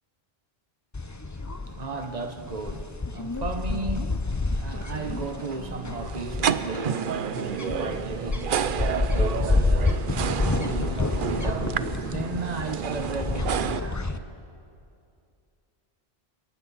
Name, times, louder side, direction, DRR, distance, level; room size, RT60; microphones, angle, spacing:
sound 1, 0.9-14.2, left 3 dB, 20° left, 0.7 m, -29 dB
voice 1, 1.2-14.3, right 3 dB, 40° right, 1.2 m, -35 dB
sound 2, 4.9-13.8, right 8 dB, 60° right, 0.7 m, -31 dB
27.5 x 23.5 x 4.1 m
omnidirectional pair, 1.0 m